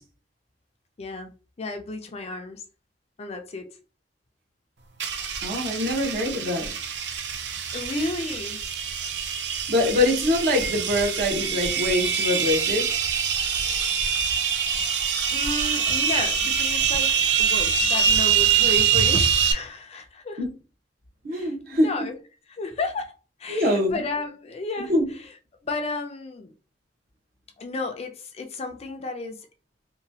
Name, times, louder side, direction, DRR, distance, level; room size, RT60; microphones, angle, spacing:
voice 1, 1.0-1.3 1.6-2.6 3.2-3.7 5.8-5.9 7.7-8.6 15.3-20.4 21.3-22.2 22.5-24.9 25.2-25.3 25.6-26.5 27.6-29.5, left 3 dB, 35° left, 0.4 m, -33 dB
sound 1, 5.0-19.5, right 7 dB, 80° right, 0.5 m, -24 dB
voice 2, 5.4-6.8 9.7-12.9 20.4-20.5 21.2-21.9 23.5-24.0 24.8-25.1, left 1 dB, 55° right, 1.0 m, -24 dB
2.9 x 2.3 x 2.6 m
head